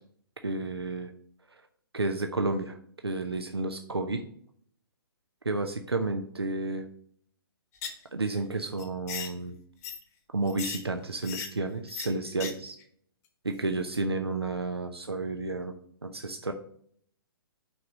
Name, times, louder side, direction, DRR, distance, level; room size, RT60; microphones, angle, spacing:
voice 1, 0.4-1.1 1.9-2.8 3.0-4.2 5.4-6.9 8.1-9.6 10.3-12.8 13.4-15.7 16.0-16.5, right 2 dB, 90° right, 6 dB, 0.7 m, -31 dB
sound 1, 7.8-8.0 8.3-8.4 8.8-9.3 9.8-10.0 10.5-10.8 11.2-11.5 11.9-12.1 12.4-12.5 12.8-12.9, left 7 dB, 40° left, 1.5 m, -36 dB
6.0 x 3.9 x 6.0 m, 0.62 s
figure-of-eight pair, 125°, 13 cm